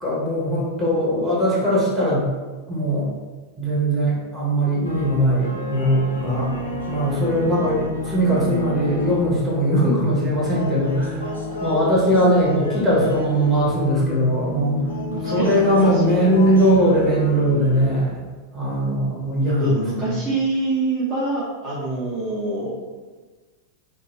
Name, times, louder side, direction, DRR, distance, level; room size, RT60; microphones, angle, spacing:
voice 1, 0.0-2.3 2.7-3.1 3.6-6.5 6.9-11.2 11.6-14.9 15.2-18.2 18.5-20.1, equal, 10° right, -8 dB, 1.2 m, -20 dB
sound 1, 4.8-18.0, left 2 dB, 75° left, 0.5 m, -30 dB
voice 2, 11.2-11.7 15.1-17.1 19.5-22.7, right 2 dB, 30° right, -9 dB, 0.8 m, -27 dB
2.6 x 2.4 x 3.1 m, 1.3 s
figure-of-eight pair, 90°, 0 cm